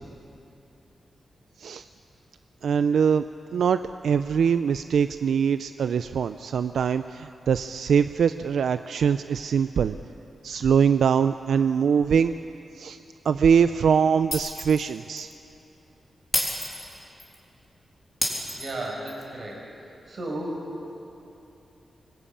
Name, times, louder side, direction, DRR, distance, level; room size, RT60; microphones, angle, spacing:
voice 1, 2.6-3.2 3.5-10.0 10.4-12.3 12.7-13.0 13.2-15.3, right 7 dB, 85° right, 11 dB, 0.5 m, -23 dB
Shatter, 14.3-14.9 15.2-15.3 16.3-17.3 18.2-19.2, left 1 dB, 5° left, 3.4 m, -29 dB
voice 2, 18.5-19.7 20.1-20.9, right 1 dB, 45° right, -1 dB, 5.7 m, -34 dB
25.0 x 20.5 x 8.7 m, 2.8 s
wide cardioid pair, 175°, 0 cm